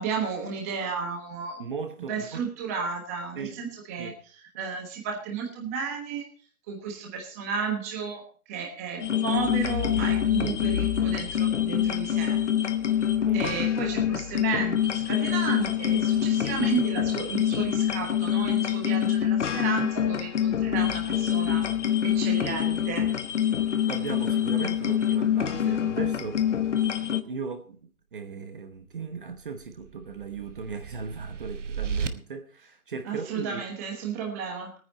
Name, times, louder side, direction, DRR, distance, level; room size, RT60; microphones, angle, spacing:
voice 1, 0.0-1.6 2.1-4.1 4.6-6.3 6.7-12.4 13.3-21.7 22.0-23.1 33.1-34.7, right 5 dB, 10° right, 1.2 m, -33 dB
voice 2, 1.6-2.5 3.4-4.2 13.2-13.5 23.9-26.4 27.1-33.6, right 5 dB, 35° right, 1.1 m, -37 dB
sound 1, 9.0-27.2, left 9 dB, 55° left, 1.1 m, -25 dB
sound 2, 29.3-32.1, right 6 dB, 55° right, 1.3 m, -35 dB
19.5 x 9.6 x 4.2 m
hypercardioid pair, 170°, 44 cm